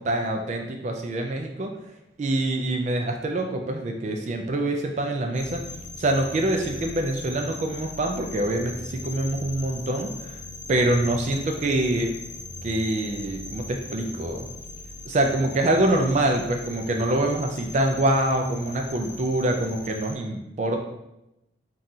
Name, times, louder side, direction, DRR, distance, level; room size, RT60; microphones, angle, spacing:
voice 1, 0.0-1.7 2.2-5.6 6.0-10.4 10.7-12.1 12.6-14.5 15.1-20.8, right 1 dB, 40° right, 3 dB, 0.3 m, -25 dB
sound 1, 5.3-20.1, left 2 dB, 45° left, 0.4 m, -40 dB
3.9 x 2.3 x 2.7 m, 0.89 s
head